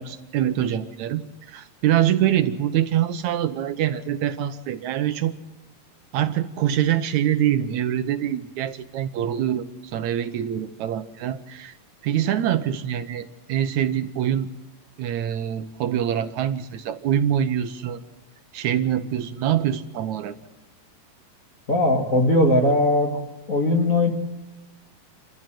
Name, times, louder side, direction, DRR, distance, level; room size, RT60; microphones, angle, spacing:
voice 1, 0.0-5.3 6.1-11.8 12.0-14.5 15.0-18.0 18.5-20.4, right 10 dB, 70° right, 10 dB, 1.9 m, -24 dB
voice 2, 21.7-23.1 23.5-24.1, left 1 dB, 30° left, 4 dB, 1.7 m, -19 dB
28.5 x 14.0 x 7.6 m, 1.1 s
omnidirectional pair, 4.0 m